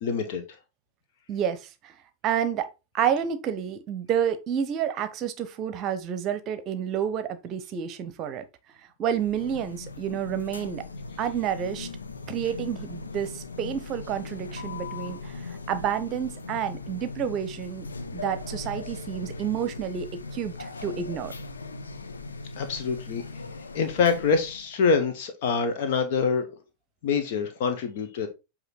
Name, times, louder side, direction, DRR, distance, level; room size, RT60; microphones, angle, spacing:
voice 1, 0.0-0.4 22.6-23.4 23.7-26.5 27.0-28.3, left 5 dB, 50° left, 0.9 m, -25 dB
voice 2, 1.3-1.9 2.2-2.7 2.9-8.4 9.0-10.9 11.2-11.9 12.3-17.9 18.1-21.3, right 9 dB, 35° right, 0.8 m, -29 dB
sound 1, 9.1-24.7, left 3 dB, 75° left, 0.7 m, -39 dB
7.9 x 2.9 x 4.2 m
figure-of-eight pair, 90°, 0 cm